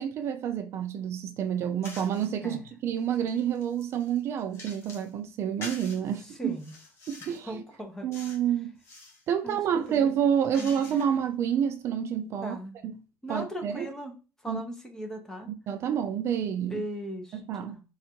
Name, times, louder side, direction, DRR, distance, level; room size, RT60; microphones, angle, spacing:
voice 1, 0.0-6.5 7.1-7.6 8.0-8.7 9.3-12.6 12.8-13.0 13.3-13.9 14.5-14.6 15.5-16.8 17.3-17.8, right 8 dB, 50° right, 0.4 m, -29 dB
sound 1, 1.8-2.3 2.9-5.1 5.6-6.0 6.5-7.5 8.1-8.5 8.8-9.2 9.8-11.3, left 2 dB, 45° left, 1.3 m, -46 dB
voice 2, 6.2-6.7 7.2-8.1 9.4-9.6 9.9-10.0 10.5-10.7 12.4-12.8 13.2-14.1 14.4-15.5 16.7-17.8, equal, 10° left, 0.8 m, -38 dB
3.6 x 2.4 x 4.4 m
cardioid pair, 155°, 6 cm